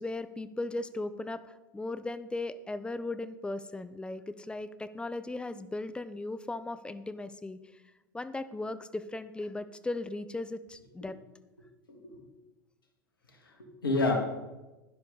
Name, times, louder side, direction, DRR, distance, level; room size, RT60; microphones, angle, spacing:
voice 1, 0.0-7.6 8.1-11.2, left 2 dB, 10° left, 13 dB, 0.7 m, -37 dB
voice 2, 11.9-12.3 13.3-14.2, left 2 dB, 90° left, 3 dB, 2.4 m, -30 dB
12.0 x 10.5 x 4.0 m, 1.1 s
hypercardioid pair, 95°, 11 cm